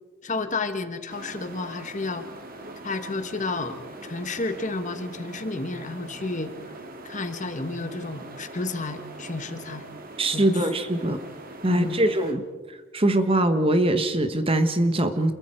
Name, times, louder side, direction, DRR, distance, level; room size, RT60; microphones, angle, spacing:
voice 1, 0.2-2.2 2.8-3.8 4.0-6.5 7.0-9.8 10.3-10.7 11.7-12.0, left 3 dB, 35° left, 9 dB, 1.4 m, -31 dB
sound 1, 1.1-12.3, right 2 dB, 45° right, 2.2 m, -42 dB
voice 2, 10.2-11.2 11.6-12.4 12.9-15.3, right 1 dB, 25° right, 9 dB, 1.2 m, -22 dB
28.5 x 22.5 x 4.6 m, 1.4 s
head